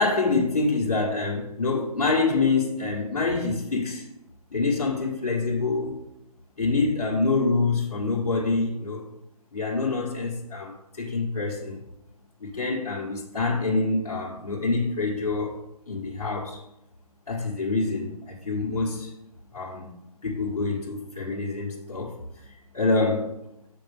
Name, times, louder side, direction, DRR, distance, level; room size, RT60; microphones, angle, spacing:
voice 1, 0.0-4.1 4.5-6.0 6.6-9.1 9.5-11.8 12.4-16.6 17.3-19.1 19.5-19.9 20.2-22.2 22.4-23.3, left 3 dB, 70° left, -6 dB, 1.9 m, -26 dB
7.7 x 5.9 x 3.6 m, 0.88 s
hypercardioid pair, 170°, 19 cm